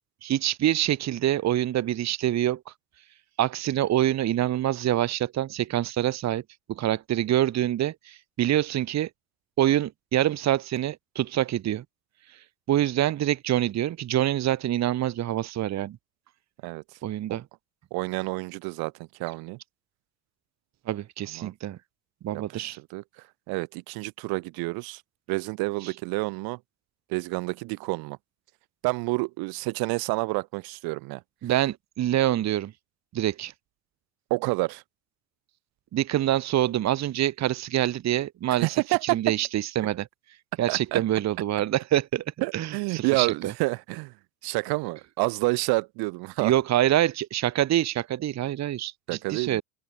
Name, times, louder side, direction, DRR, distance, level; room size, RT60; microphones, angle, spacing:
voice 1, 0.2-2.7 3.4-6.4 6.7-9.1 9.6-11.8 12.7-16.0 17.0-17.4 20.9-21.8 22.2-22.8 25.8-25.9 31.4-32.7 33.1-33.5 35.9-38.8 39.0-40.1 40.6-42.2 42.5-43.5 46.4-49.6, right 12 dB, 40° right, 1.1 m, -26 dB
voice 2, 17.9-18.9 19.2-19.6 21.3-21.5 22.5-23.0 23.5-25.0 25.3-26.6 27.1-28.2 28.8-31.2 34.3-34.8 38.6-39.0 40.7-41.0 42.4-44.1 44.4-46.5 49.1-49.6, right 25 dB, 65° right, 0.8 m, -29 dB
open air
supercardioid pair, 85°, 40 cm